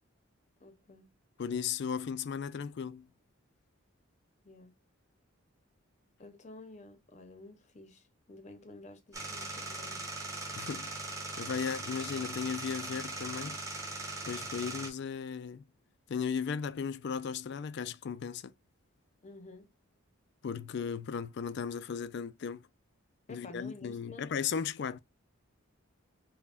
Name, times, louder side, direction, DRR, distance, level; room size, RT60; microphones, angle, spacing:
voice 1, 0.6-1.1 4.4-4.7 6.2-10.1 19.2-19.7 23.3-24.3, left 2 dB, 30° left, 0.7 m, -51 dB
voice 2, 1.4-3.1 10.6-10.9 11.4-13.6 14.3-15.6 16.1-18.5 20.4-22.6 23.3-25.0, left 6 dB, 50° left, 0.3 m, -36 dB
sound 1, 9.1-14.9, right 2 dB, 15° right, 0.9 m, -40 dB
5.5 x 2.2 x 2.4 m
head